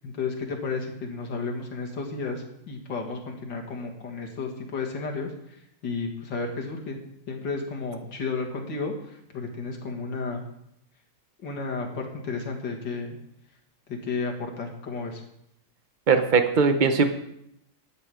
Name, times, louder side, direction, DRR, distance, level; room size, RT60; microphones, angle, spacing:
voice 1, 0.0-7.0 7.3-10.4 11.4-13.2 13.9-15.2, left 4 dB, 75° left, 1 dB, 2.4 m, -32 dB
voice 2, 16.1-17.0, right 5 dB, 85° right, 7 dB, 0.4 m, -20 dB
12.0 x 8.8 x 4.9 m, 0.77 s
omnidirectional pair, 2.0 m